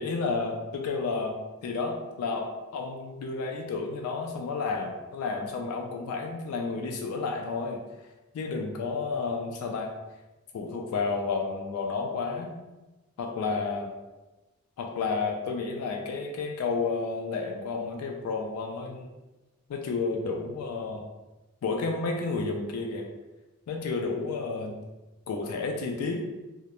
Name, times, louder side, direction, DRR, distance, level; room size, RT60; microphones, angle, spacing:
voice 1, 0.0-1.3 1.6-7.8 8.3-9.9 10.5-12.6 13.2-13.9 14.8-19.1 19.7-21.0 21.6-23.1 23.7-24.7 25.3-26.2, left 4 dB, 90° left, 2 dB, 0.3 m, -31 dB
2.4 x 2.0 x 2.9 m, 1.1 s
head